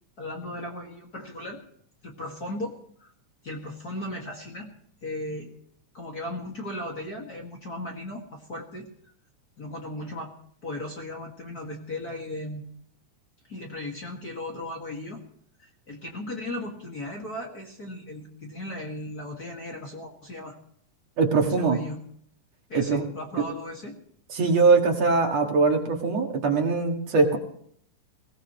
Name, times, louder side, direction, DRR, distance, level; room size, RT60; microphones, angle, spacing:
voice 1, 0.2-1.6 2.0-3.1 3.4-4.7 5.0-5.5 5.9-8.9 9.6-10.3 10.6-12.6 13.5-15.2 15.6-20.5 21.4-22.0 22.7-23.9, left 1 dB, 35° left, 0 dB, 2.1 m, -36 dB
voice 2, 21.2-21.8 22.7-23.0 24.3-27.4, right 4 dB, 60° right, 2 dB, 2.9 m, -22 dB
21.0 x 18.0 x 3.1 m, 0.64 s
omnidirectional pair, 3.6 m